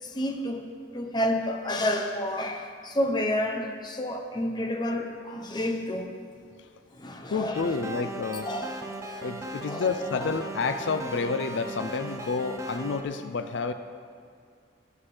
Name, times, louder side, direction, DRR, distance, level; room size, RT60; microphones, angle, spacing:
voice 1, 0.0-6.1 6.9-7.8 8.4-9.2 9.7-9.9 10.1-10.3, left 1 dB, 25° left, 3 dB, 0.8 m, -30 dB
voice 2, 7.3-8.5 9.1-13.7, left 4 dB, 75° left, 9 dB, 0.4 m, -29 dB
sound 1, 7.5-13.0, right 1 dB, 15° right, 0.6 m, -37 dB
17.5 x 8.0 x 3.3 m, 2.2 s
head